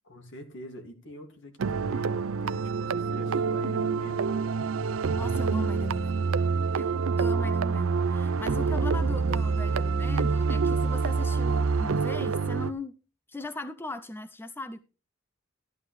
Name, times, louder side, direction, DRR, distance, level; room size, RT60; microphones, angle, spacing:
voice 1, 0.0-4.3 7.1-7.5, left 1 dB, 65° left, 5 dB, 2.2 m, -44 dB
sound 1, 1.6-12.7, right 5 dB, 80° right, 0.5 m, -27 dB
voice 2, 5.2-6.3 6.8-13.0 13.3-14.8, left 2 dB, 10° left, 10 dB, 0.5 m, -38 dB
13.0 x 11.5 x 3.2 m, 0.32 s
head